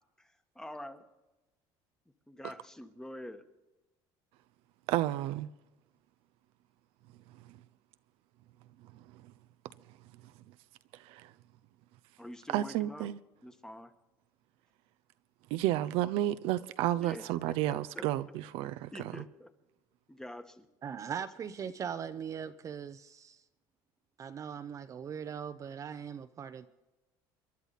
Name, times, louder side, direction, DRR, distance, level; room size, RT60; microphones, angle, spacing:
voice 1, 0.2-1.0 2.3-3.4 12.2-13.1 13.4-13.9 17.0-17.5 17.9-18.0 18.9-19.5 20.1-20.7, left 1 dB, 5° left, 1.3 m, -46 dB
voice 2, 4.9-5.5 11.0-11.3 12.5-13.2 15.5-18.9 19.2-19.3, right 14 dB, 75° right, 0.6 m, -31 dB
voice 3, 20.8-23.4 24.2-26.7, right 7 dB, 35° right, 0.7 m, -40 dB
28.0 x 11.0 x 4.1 m
cardioid pair, 130°, 10 cm